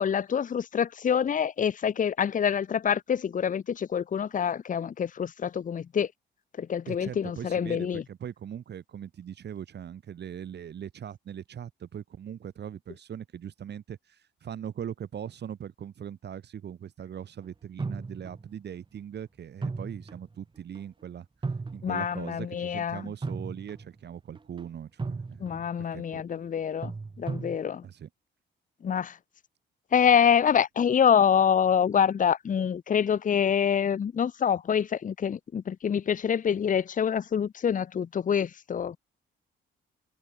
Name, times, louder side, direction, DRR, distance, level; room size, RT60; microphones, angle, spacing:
voice 1, 0.0-6.1 6.6-8.0 21.8-23.0 25.4-26.9 27.2-27.8 28.8-29.2 29.9-39.0, left 8 dB, 40° left, 1.0 m, -26 dB
voice 2, 6.9-21.3 21.7-25.7 25.9-26.2 27.8-28.1, right 9 dB, 60° right, 3.0 m, -40 dB
sound 1, 17.8-18.6 19.6-20.3 20.7-20.8 21.4-22.1 23.2-24.0 24.3-24.6 25.0-25.7 26.8-27.6, right 4 dB, 25° right, 2.2 m, -35 dB
cardioid pair, 90°, 20 cm